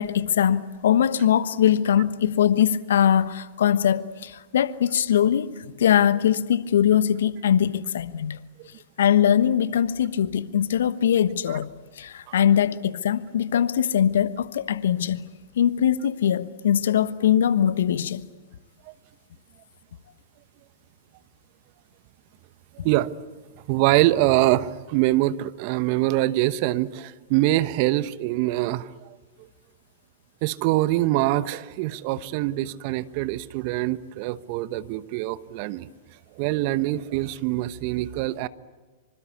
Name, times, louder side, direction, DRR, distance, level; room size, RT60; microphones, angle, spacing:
voice 1, 0.0-8.4 9.0-11.7 12.0-15.2 15.6-18.3, left 9 dB, 70° left, 1.2 m, -21 dB
voice 2, 22.8-23.1 23.7-28.9 30.4-35.9 36.4-38.5, right 16 dB, 50° right, 1.1 m, -24 dB
25.5 x 25.5 x 8.4 m
hypercardioid pair, 100°, 0 cm